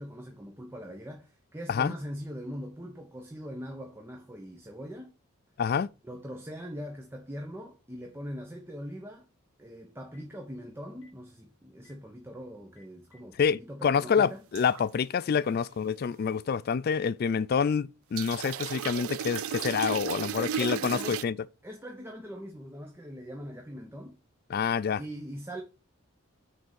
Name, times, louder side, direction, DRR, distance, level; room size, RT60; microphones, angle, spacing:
voice 1, 0.0-5.1 6.0-9.3 9.6-14.4 15.4-15.6 20.3-21.2 21.6-24.2 25.0-25.6, equal, 10° right, 1.0 m, -41 dB
Telephone, 10.1-10.3 10.9-11.1 11.7-11.9 12.6-13.6 14.1-14.2, left 3 dB, 65° left, 2.9 m, -60 dB
voice 2, 13.4-21.3 24.5-25.0, left 6 dB, 45° left, 0.3 m, -27 dB
sound 1, 14.5-14.8 18.2-21.2, right 9 dB, 80° right, 0.4 m, -34 dB
6.4 x 4.7 x 6.8 m
head